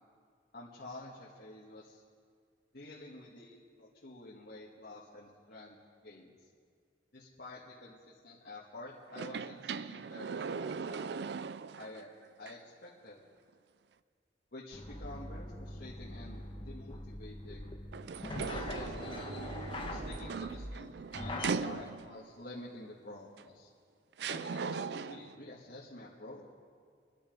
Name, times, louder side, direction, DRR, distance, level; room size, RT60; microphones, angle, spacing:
voice 1, 0.5-2.0 2.7-5.8 6.0-6.4 7.1-11.2 11.8-12.1 12.4-13.2 14.5-17.7 18.2-19.2 19.9-23.7 24.3-26.5, left 1 dB, 60° left, -6 dB, 1.7 m, -49 dB
sound 1, 9.1-12.0 12.5-12.6 17.9-22.3 23.4-23.5 24.2-25.4, right 5 dB, 70° right, 0.4 m, -39 dB
sound 2, 14.7-21.5, left 1 dB, 30° left, 1.1 m, -42 dB
26.0 x 10.5 x 5.3 m, 2.1 s
head